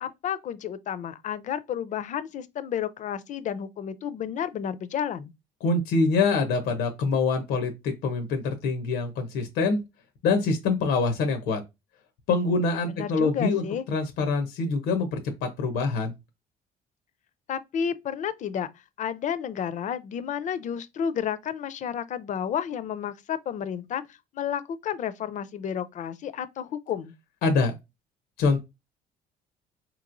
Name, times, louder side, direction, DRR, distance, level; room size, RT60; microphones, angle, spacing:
voice 1, 0.0-5.3 12.9-13.8 17.5-18.7 19.0-27.1, left 8 dB, 45° left, 0.5 m, -31 dB
voice 2, 5.6-9.8 10.2-11.6 12.3-16.1 27.4-27.7 28.4-28.6, left 4 dB, 90° left, 0.7 m, -25 dB
4.1 x 3.0 x 2.5 m
cardioid pair, 110°, 17 cm